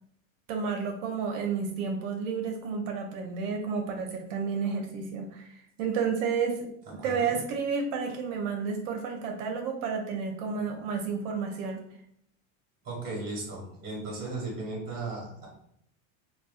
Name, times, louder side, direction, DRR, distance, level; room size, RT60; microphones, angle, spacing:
voice 1, 0.5-11.8, right 5 dB, 60° right, 3 dB, 0.6 m, -31 dB
voice 2, 7.0-7.3 10.5-10.6 12.8-15.5, right 2 dB, 25° right, -4 dB, 1.0 m, -36 dB
2.5 x 2.1 x 2.4 m, 0.71 s
supercardioid pair, 120°, 42 cm